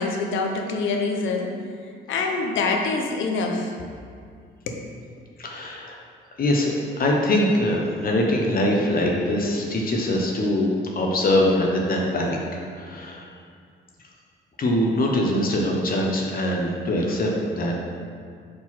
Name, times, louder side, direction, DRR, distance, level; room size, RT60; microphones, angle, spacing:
voice 1, 0.0-1.5 2.1-3.7 4.7-4.8, left 3 dB, 75° left, 2 dB, 0.8 m, -25 dB
voice 2, 5.4-6.0 6.4-10.7 11.0-12.4 12.8-13.3 14.6-17.9, left 1 dB, 45° left, -1 dB, 0.9 m, -23 dB
4.8 x 4.0 x 5.7 m, 2.2 s
cardioid pair, 90°, 20 cm